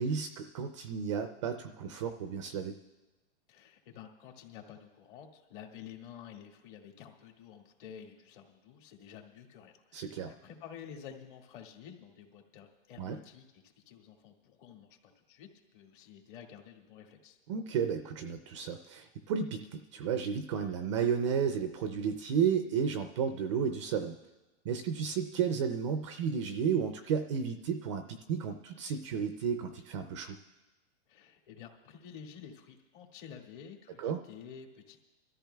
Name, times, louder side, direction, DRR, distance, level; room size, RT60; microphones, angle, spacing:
voice 1, 0.0-2.7 9.9-10.3 13.0-13.2 17.5-24.1 24.6-30.4 34.0-34.2, right 7 dB, 25° right, 7 dB, 0.4 m, -32 dB
voice 2, 3.5-17.4 31.1-35.0, left 8 dB, 45° left, 2 dB, 2.0 m, -51 dB
29.0 x 13.5 x 2.3 m, 1.1 s
hypercardioid pair, 155°, 36 cm